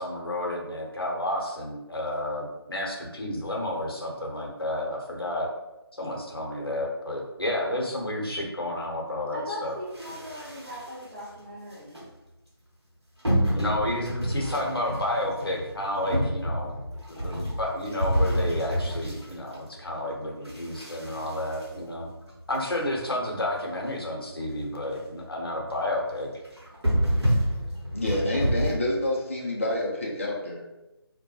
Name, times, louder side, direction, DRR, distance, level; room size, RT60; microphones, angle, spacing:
voice 1, 0.0-5.5 5.9-9.7 13.5-16.7 17.1-22.1 22.5-26.3, left 1 dB, 65° left, -1 dB, 0.7 m, -31 dB
voice 2, 9.3-12.0, left 1 dB, 30° right, -7 dB, 0.5 m, -38 dB
sound 1, 9.9-11.2 11.7-12.0 13.2-20.0 20.4-22.6 23.1-23.2 23.3-23.4 23.9-24.0 24.3-24.5 24.8-25.2 25.6-25.8 26.4-28.7, equal, 85° right, 1.0 m, -29 dB
voice 3, 27.9-30.6, left 1 dB, 30° left, -2 dB, 0.4 m, -28 dB
2.2 x 2.1 x 2.8 m, 0.98 s
figure-of-eight pair, 155°, 14 cm